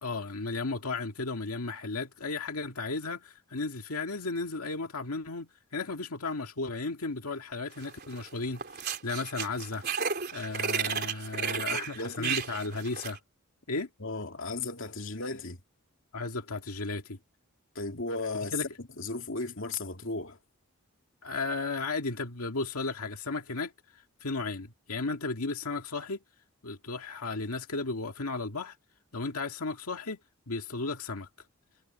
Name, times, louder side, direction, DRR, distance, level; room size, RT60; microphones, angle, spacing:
voice 1, 0.0-9.8 10.3-13.2 13.7-13.9 16.1-17.2 18.5-18.7 21.2-26.2 26.6-28.8 29.1-30.2 30.5-31.3, left 3 dB, 85° left, 2.0 m, -34 dB
sound 1, 7.8-8.3 8.6-13.2, right 7 dB, 45° right, 3.8 m, -33 dB
voice 2, 11.5-12.3 14.0-15.6 17.7-20.4, left 3 dB, 60° left, 2.7 m, -36 dB
head